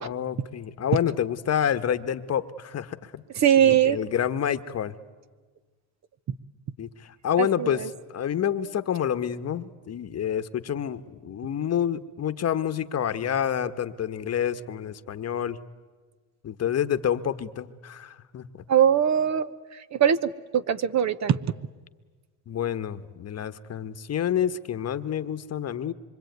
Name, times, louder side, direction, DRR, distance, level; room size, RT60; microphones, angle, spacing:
voice 1, 0.0-3.2 3.6-4.9 6.8-7.8 8.1-15.6 16.4-18.5 22.5-25.9, left 9 dB, 35° left, 12 dB, 1.2 m, -28 dB
voice 2, 3.4-4.0 7.4-7.9 18.7-19.5 19.9-21.4, right 9 dB, 40° right, 14 dB, 1.0 m, -21 dB
26.0 x 24.0 x 9.4 m, 1.4 s
supercardioid pair, 100°, 42 cm